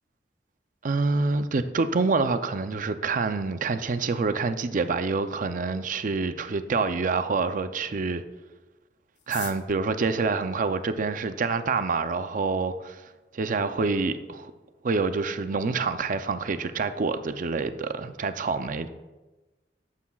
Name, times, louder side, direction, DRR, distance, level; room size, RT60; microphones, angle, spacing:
voice 1, 0.8-8.2 9.3-13.0 13.3-14.5 14.8-18.9, right 4 dB, 50° right, 0.5 m, -27 dB
sound 1, 9.1-11.4 12.2-12.3 12.5-12.6 12.9-13.3 13.7-13.8 13.9-14.4 14.7-14.9 15.2-15.5, left 10 dB, 85° left, 0.9 m, -45 dB
13.5 x 9.7 x 2.4 m
head